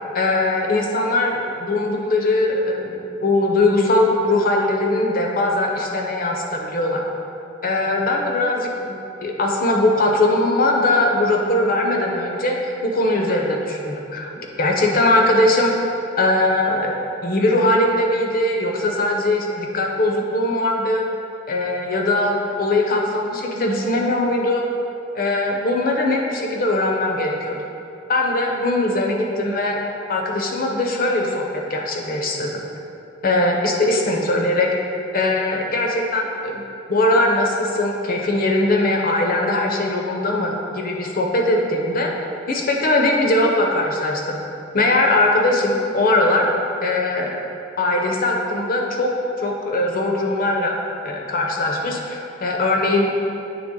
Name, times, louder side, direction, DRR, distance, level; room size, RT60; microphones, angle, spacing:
voice 1, 0.1-7.0 7.6-14.3 14.6-15.9 16.2-17.0 17.2-21.1 21.5-24.6 25.1-27.6 28.1-29.8 30.1-32.6 33.2-34.7 35.1-36.6 36.9-42.1 42.5-44.4 44.7-46.5 46.8-47.4 47.8-49.1 49.4-50.8 51.0-53.2, left 2 dB, 50° left, 1 dB, 0.7 m, -20 dB
8.7 x 3.4 x 3.7 m, 2.6 s
head